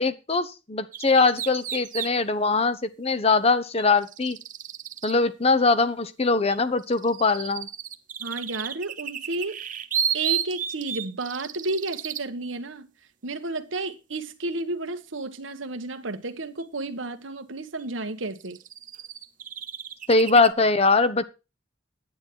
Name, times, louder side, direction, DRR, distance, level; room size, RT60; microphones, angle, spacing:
voice 1, 0.0-4.4 5.0-7.7 20.1-21.2, left 3 dB, 30° left, 0.9 m, -22 dB
sound 1, 0.9-2.1 3.8-5.1 6.5-12.2 16.6-16.7 17.8-17.9 18.3-20.5, right 9 dB, 40° right, 0.8 m, -33 dB
voice 2, 8.2-9.6 10.1-12.9 13.2-18.6, right 2 dB, 85° right, 1.4 m, -32 dB
10.0 x 9.2 x 4.6 m
head